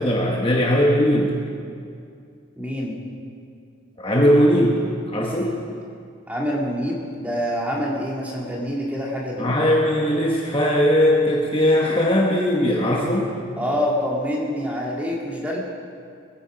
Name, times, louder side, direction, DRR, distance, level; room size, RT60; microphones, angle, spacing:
voice 1, 0.0-1.3 4.0-4.8 5.1-5.6 9.4-13.3, equal, 25° left, -2 dB, 1.1 m, -19 dB
voice 2, 2.6-3.0 6.3-9.5 13.6-15.6, equal, 5° right, -3 dB, 2.3 m, -26 dB
21.5 x 9.8 x 5.0 m, 2.3 s
head